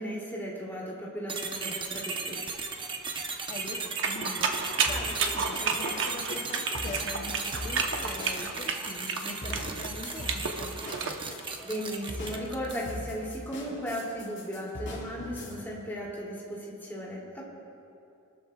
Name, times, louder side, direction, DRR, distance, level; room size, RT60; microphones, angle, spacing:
voice 1, 0.0-2.4 11.6-17.4, equal, 10° left, -5 dB, 2.9 m, -36 dB
sound 1, 1.3-12.9, right 4 dB, 20° right, 0.9 m, -36 dB
voice 2, 3.5-10.8, left 1 dB, 30° left, -1 dB, 0.9 m, -42 dB
sound 2, 4.0-11.2, right 5 dB, 60° right, 1.0 m, -31 dB
sound 3, 4.9-15.5, left 1 dB, 60° left, 3.4 m, -41 dB
23.0 x 13.0 x 2.4 m, 2.7 s
head